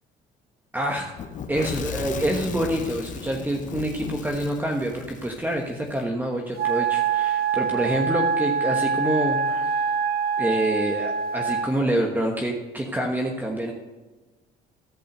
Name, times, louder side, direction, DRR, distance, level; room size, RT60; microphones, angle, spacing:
voice 1, 0.7-1.1 1.5-9.7 10.4-13.7, right 1 dB, 10° right, 1 dB, 1.2 m, -26 dB
Fire / Explosion, 1.2-6.0, left 7 dB, 50° left, 1.0 m, -36 dB
Wind instrument woodwind instrument, 6.6-11.8, right 6 dB, 65° right, 0.9 m, -25 dB
14.0 x 5.4 x 6.6 m, 1.2 s
cardioid pair, 110°, 17 cm